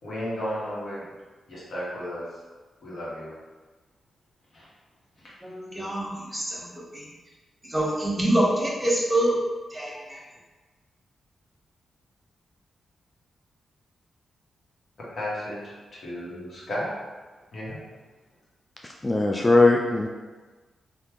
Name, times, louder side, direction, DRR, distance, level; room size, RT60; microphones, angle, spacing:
voice 1, 0.0-1.1 1.5-2.4 2.8-3.3 4.5-4.7 5.2-5.3 15.0-16.9 17.5-17.8, equal, 60° left, -7 dB, 1.2 m, -34 dB
voice 2, 5.4-6.6 6.9-7.1 7.7-9.4 9.7-10.2, right 1 dB, 10° right, -4 dB, 1.3 m, -25 dB
voice 3, 19.0-20.1, left 2 dB, 20° left, 0 dB, 0.4 m, -19 dB
3.3 x 2.4 x 3.0 m, 1.3 s
supercardioid pair, 40°, 0 cm